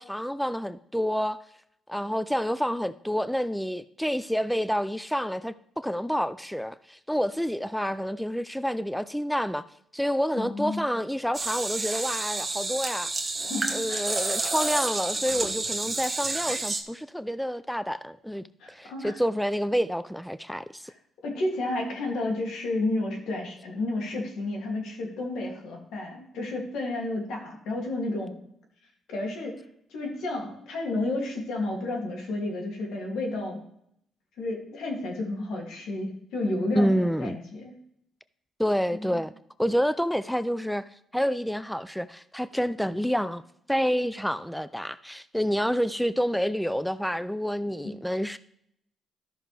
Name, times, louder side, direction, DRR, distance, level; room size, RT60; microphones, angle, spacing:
voice 1, 0.0-1.4 1.9-9.6 9.9-13.1 13.7-20.9 36.8-37.4 38.6-39.3 39.6-43.4 43.7-48.4, equal, ahead, 0.3 m, -28 dB
voice 2, 10.4-10.8 13.4-14.2 18.6-19.1 20.8-20.9 21.2-28.3 29.1-29.6 29.9-33.6 34.4-37.7 38.9-39.2 47.8-47.9, left 2 dB, 80° left, 2.4 m, -31 dB
sound 1, 11.3-16.8, right 3 dB, 20° right, 1.2 m, -30 dB
13.5 x 6.1 x 3.3 m
cardioid pair, 90°, 0 cm